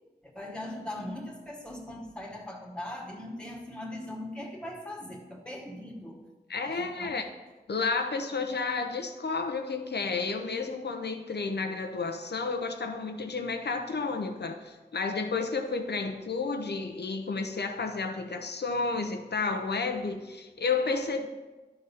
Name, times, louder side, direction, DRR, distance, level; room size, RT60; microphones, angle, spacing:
voice 1, 0.2-6.2 6.6-7.2, left 1 dB, 5° left, -1 dB, 1.8 m, -40 dB
voice 2, 6.5-7.3 7.7-21.3, left 4 dB, 85° left, 6 dB, 0.8 m, -31 dB
11.5 x 3.9 x 5.7 m, 1.2 s
wide cardioid pair, 60°, 17 cm